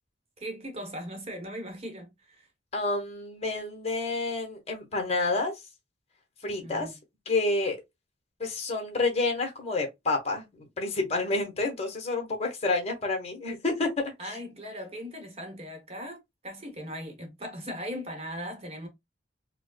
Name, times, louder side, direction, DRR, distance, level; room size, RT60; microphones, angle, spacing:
voice 1, 0.4-2.5 6.6-6.9 14.2-18.9, equal, 35° right, 1.1 m, -39 dB
voice 2, 2.7-5.5 6.4-6.9 7.2-7.8 8.4-14.4, left 3 dB, 35° left, 1.2 m, -29 dB
4.6 x 2.2 x 2.3 m
head